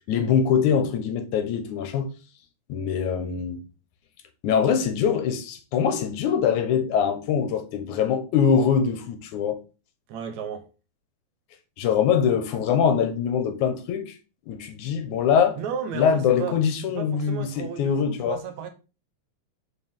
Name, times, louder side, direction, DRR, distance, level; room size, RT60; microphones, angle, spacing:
voice 1, 0.1-2.1 2.7-3.6 4.4-9.6 11.8-14.1 14.5-15.6 15.9-18.4, left 7 dB, 85° left, 2.5 m, -23 dB
voice 2, 10.1-10.7 15.6-16.6 17.0-18.7, right 7 dB, 75° right, 2.2 m, -34 dB
7.0 x 5.5 x 3.6 m
omnidirectional pair, 3.4 m